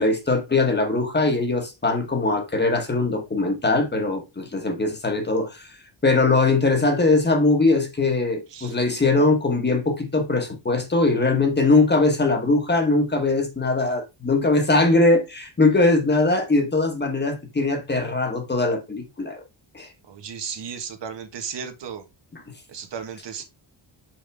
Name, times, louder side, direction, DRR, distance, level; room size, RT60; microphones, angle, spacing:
voice 1, 0.0-5.6 6.0-19.4 19.7-19.9, left 3 dB, 20° left, 1.2 m, -21 dB
voice 2, 20.0-22.1 22.7-23.4, right 7 dB, 65° right, 1.4 m, -35 dB
5.9 x 5.4 x 3.4 m
wide cardioid pair, 165°, 46 cm